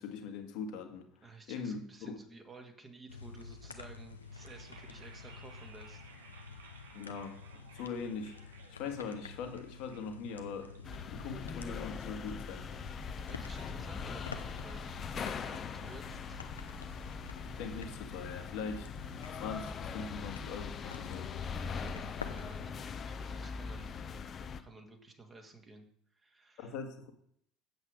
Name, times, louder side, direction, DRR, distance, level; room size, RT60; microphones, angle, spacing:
voice 1, 0.0-1.0 1.5-2.2 6.9-7.4 7.7-10.7 11.1-12.7 17.4-21.3 26.6-27.1, left 5 dB, 60° left, 6 dB, 1.5 m, -41 dB
voice 2, 1.2-6.0 13.3-14.9 15.2-16.4 21.6-24.0 24.6-25.9 26.2-26.7, right 3 dB, 25° right, 4 dB, 2.0 m, -53 dB
sound 1, 3.1-22.7, left 5 dB, 85° left, 0.7 m, -50 dB
sound 2, 4.2-14.2, right 4 dB, 70° right, 1.3 m, -59 dB
sound 3, 10.8-24.6, left 5 dB, 35° left, 0.8 m, -41 dB
8.1 x 7.9 x 5.0 m, 0.66 s
figure-of-eight pair, 65°, 0 cm